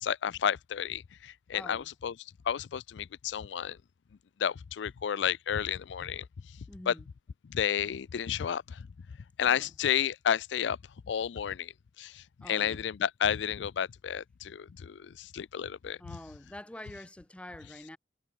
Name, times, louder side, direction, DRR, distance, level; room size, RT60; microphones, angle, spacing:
voice 1, 0.0-2.1 2.5-3.8 4.4-6.2 6.9-7.0 7.5-8.9 9.4-10.8 11.1-11.7 12.0-16.2, left 8 dB, 85° left, 0.4 m, -31 dB
voice 2, 1.5-1.9 6.7-7.1 9.5-9.7 12.4-12.8 16.0-18.0, left 1 dB, 5° left, 0.6 m, -46 dB
head